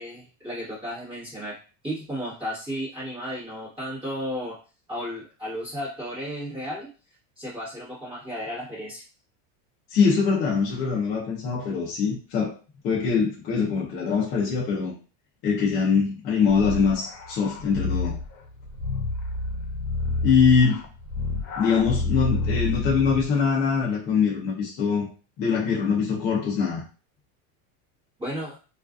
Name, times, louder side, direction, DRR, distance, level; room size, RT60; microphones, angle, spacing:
voice 1, 0.0-1.6 1.8-4.6 4.9-6.9 7.4-9.0 28.2-28.6, equal, 10° right, -11 dB, 1.0 m, -33 dB
voice 2, 9.9-12.5 12.8-14.9 15.4-18.2 20.2-20.8 21.6-25.1 25.4-26.8, left 5 dB, 25° left, -5 dB, 0.4 m, -23 dB
sound 1, 16.5-23.4, left 3 dB, 80° left, 0.7 m, -29 dB
2.4 x 2.3 x 2.3 m, 0.35 s
cardioid pair, 175°, 42 cm